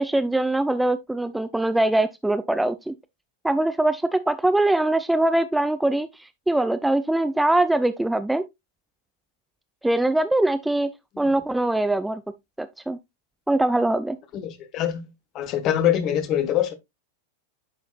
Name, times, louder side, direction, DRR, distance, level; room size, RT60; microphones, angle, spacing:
voice 1, 0.0-2.9 3.4-8.4 9.8-10.9 11.2-12.2 12.6-13.0 13.5-14.2, right 1 dB, 5° right, 0.4 m, -22 dB
voice 2, 14.3-15.0 15.3-16.7, left 10 dB, 35° left, 1.2 m, -24 dB
9.4 x 5.8 x 2.4 m
figure-of-eight pair, 90°, 0 cm